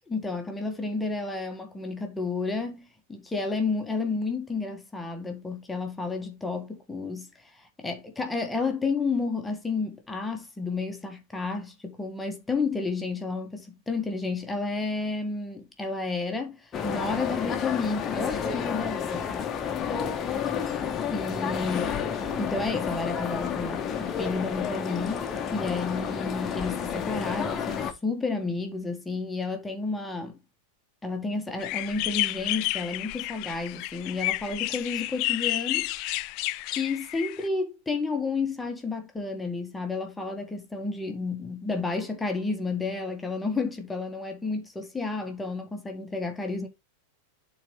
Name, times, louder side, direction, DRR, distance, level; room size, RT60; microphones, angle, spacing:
voice 1, 0.1-19.2 19.6-20.6 21.1-22.0 22.4-30.4 31.0-35.9 36.7-46.7, left 3 dB, 10° left, 1.5 m, -31 dB
sound 1, 16.7-27.9, left 7 dB, 25° left, 1.2 m, -30 dB
sound 2, 31.6-37.5, left 19 dB, 45° left, 0.4 m, -31 dB
11.0 x 4.1 x 3.2 m
figure-of-eight pair, 90°, 0 cm